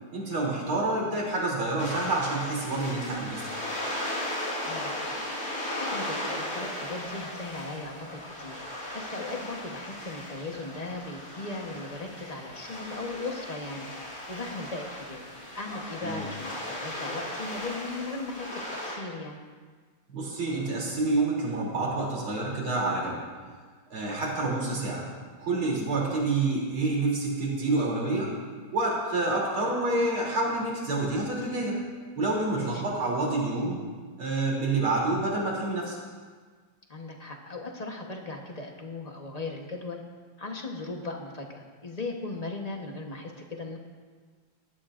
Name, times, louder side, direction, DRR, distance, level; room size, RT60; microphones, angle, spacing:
voice 1, 0.1-3.6 16.0-16.3 20.1-23.2 23.9-25.1 25.4-28.3 28.7-31.8 32.2-33.8 34.2-36.0, right 2 dB, 80° right, -3 dB, 3.9 m, -28 dB
sound 1, 1.8-18.9, left 1 dB, 50° left, 4.5 m, -36 dB
voice 2, 4.6-5.1 5.8-8.6 8.9-13.9 14.3-15.2 15.5-19.4 32.5-32.8 36.9-40.0 40.4-43.8, left 3 dB, 30° left, 1 dB, 0.8 m, -38 dB
19.0 x 12.5 x 2.5 m, 1.5 s
omnidirectional pair, 2.3 m